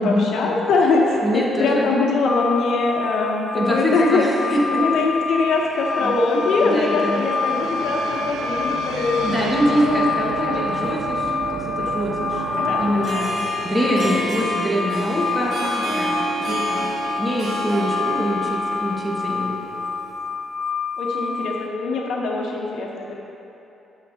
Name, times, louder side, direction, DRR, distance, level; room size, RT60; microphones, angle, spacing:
voice 1, 0.0-9.5 9.8-10.1 10.5-10.6 11.8-11.9 12.6-12.9 21.0-23.1, left 3 dB, 75° left, -1 dB, 0.9 m, -22 dB
voice 2, 1.2-1.9 3.5-4.8 6.0-6.1 6.6-7.2 9.2-13.3 13.6-16.2 16.5-16.9 17.2-19.6, equal, 5° right, -5 dB, 1.6 m, -24 dB
sound 1, 2.3-21.7, left 5 dB, 15° left, 0.4 m, -28 dB
sound 2, 4.8-15.1, right 6 dB, 75° right, 0.5 m, -32 dB
Harp, 12.8-20.2, right 2 dB, 55° right, 1.2 m, -29 dB
12.0 x 6.6 x 2.8 m, 2.9 s
cardioid pair, 90°, 0 cm